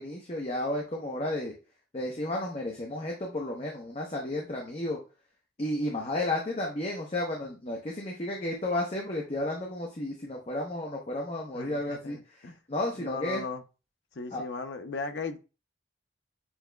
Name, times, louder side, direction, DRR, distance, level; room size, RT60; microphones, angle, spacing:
voice 1, 0.0-1.5 1.9-5.0 5.6-12.2 12.7-13.4 14.3-14.4, left 1 dB, 35° left, 0.7 m, -32 dB
voice 2, 11.5-12.6 13.0-13.6 14.1-15.4, left 4 dB, 70° left, 0.6 m, -37 dB
7.0 x 2.9 x 2.2 m
head